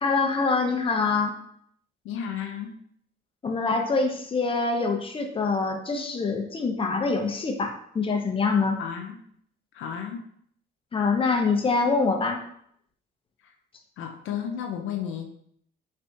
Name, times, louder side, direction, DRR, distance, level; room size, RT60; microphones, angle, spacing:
voice 1, 0.0-1.4 3.4-8.8 10.9-12.4, left 4 dB, 25° left, 3 dB, 0.6 m, -25 dB
voice 2, 2.0-2.8 8.8-9.2 9.7-10.3 13.4-13.5 14.0-15.3, left 8 dB, 85° left, 4 dB, 0.5 m, -33 dB
3.4 x 3.3 x 2.7 m, 0.67 s
cardioid pair, 90°, 20 cm